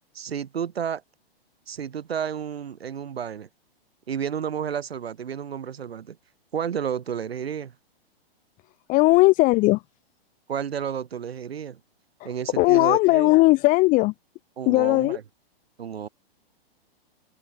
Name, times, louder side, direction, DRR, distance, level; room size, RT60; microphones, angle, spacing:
voice 1, 0.1-1.0 1.7-3.5 4.1-6.2 6.5-7.7 10.5-11.8 12.2-13.3 14.6-15.2 15.8-16.1, right 8 dB, 80° right, 3.8 m, -31 dB
voice 2, 8.9-9.8 12.6-14.1 14.7-15.2, left 22 dB, 25° left, 0.7 m, -18 dB
hypercardioid pair, 125°, 30 cm